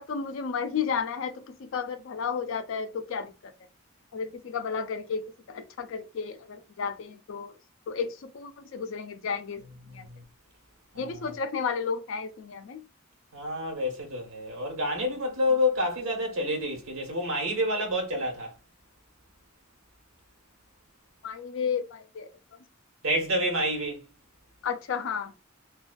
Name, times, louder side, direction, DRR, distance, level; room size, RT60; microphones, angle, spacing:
voice 1, 0.0-3.5 4.1-7.5 7.9-9.6 9.9-10.1 11.0-12.8 21.2-22.3 24.6-25.3, left 6 dB, 65° left, 0.4 m, -32 dB
voice 2, 9.9-10.2 10.9-11.3 13.3-18.5 23.0-24.0, left 1 dB, 85° right, 1.1 m, -28 dB
2.4 x 2.2 x 2.2 m
head